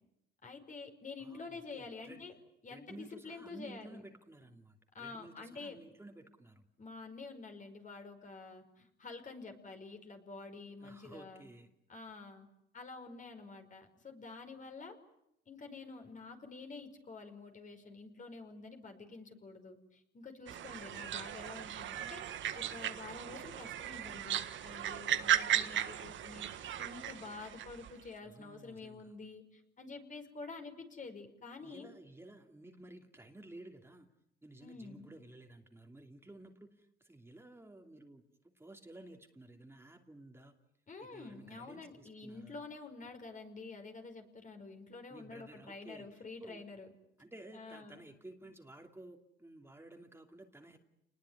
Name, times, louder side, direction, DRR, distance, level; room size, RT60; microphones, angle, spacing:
voice 1, 0.4-2.3 2.6-4.0 4.9-5.8 6.8-11.5 11.9-12.5 12.7-15.0 15.5-22.2 22.5-31.9 34.6-35.1 40.9-46.9 47.5-48.0, left 3 dB, 40° left, 5 dB, 5.2 m, -48 dB
voice 2, 1.2-2.2 2.7-6.6 10.8-11.7 28.3-29.0 31.6-34.1 34.4-36.7 37.0-38.2 38.6-40.5 41.1-42.5 45.1-46.1 46.4-46.6 47.2-50.8, right 1 dB, 10° right, 3 dB, 2.8 m, -54 dB
sound 1, 20.5-27.9, right 11 dB, 70° right, 1.6 m, -36 dB
28.5 x 20.5 x 9.7 m, 0.80 s
cardioid pair, 90°, 20 cm